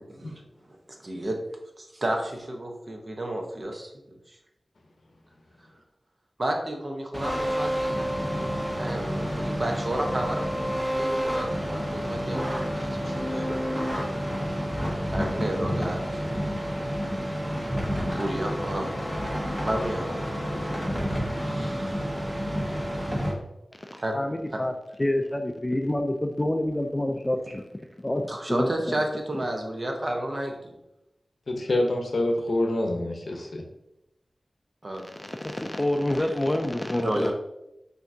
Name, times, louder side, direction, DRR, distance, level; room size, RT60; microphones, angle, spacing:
voice 1, 0.1-0.4 1.0-1.4 1.8-3.9 6.4-13.8 15.1-16.2 16.5-17.3 18.1-18.9 19.6-22.1 24.0-24.2 24.5-24.6 28.3-30.7 34.8-35.1 36.1-36.2 37.0-37.3, right 1 dB, 45° right, 2 dB, 0.8 m, -32 dB
sound 1, 7.1-23.3, equal, 20° right, 1.2 m, -29 dB
voice 2, 24.1-24.7 25.0-27.6 28.0-28.2 28.5-28.9 35.2-37.3, left 1 dB, 25° left, 4 dB, 0.3 m, -27 dB
voice 3, 31.5-33.6, left 1 dB, 70° left, 3 dB, 0.7 m, -26 dB
5.7 x 2.7 x 2.6 m, 0.88 s
wide cardioid pair, 55°, 0 cm